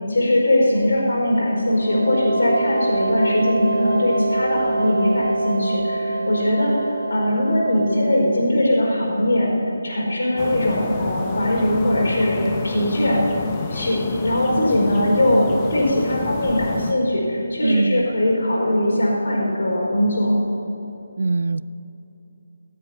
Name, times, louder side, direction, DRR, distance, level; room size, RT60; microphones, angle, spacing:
voice 1, 0.1-9.5 9.8-13.2 13.7-14.0 14.2-20.4, left 1 dB, 75° left, -3 dB, 4.6 m, -20 dB
sound 1, 1.6-8.2, right 2 dB, 15° right, 3.6 m, -25 dB
sound 2, 10.4-16.9, left 4 dB, 15° left, 0.8 m, -30 dB
voice 2, 17.6-18.1 21.2-21.6, right 3 dB, 85° right, 16 dB, 0.5 m, -21 dB
17.0 x 8.2 x 9.5 m, 2.8 s
hypercardioid pair, 170°, 0 cm